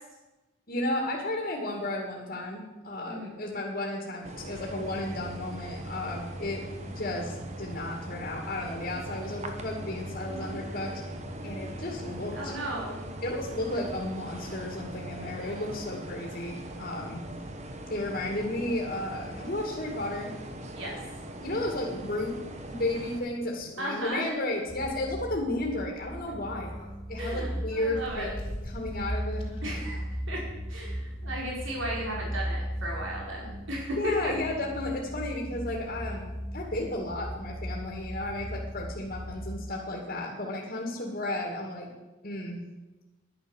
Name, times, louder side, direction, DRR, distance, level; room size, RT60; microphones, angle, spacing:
voice 1, 0.7-6.6 6.9-10.9 11.4-12.5 13.2-17.2 17.9-20.3 21.4-22.3 22.7-26.7 27.1-28.4 28.7-29.8 34.0-41.9 42.2-42.6, left 1 dB, 45° left, -1 dB, 2.2 m, -33 dB
sound 1, 4.2-23.2, right 1 dB, 30° right, 1.2 m, -40 dB
voice 2, 12.3-13.0 20.7-21.0 23.8-24.3 27.2-28.3 29.6-30.4 30.7-34.3, right 1 dB, 65° right, -3 dB, 5.0 m, -35 dB
sound 2, 22.8-23.8 24.1-24.2 24.5-24.7 25.9-26.9 27.4-29.7, equal, 25° left, 2.3 m, -42 dB
sound 3, 24.7-39.6, equal, ahead, 1.0 m, -37 dB
11.0 x 10.5 x 7.1 m, 1.1 s
head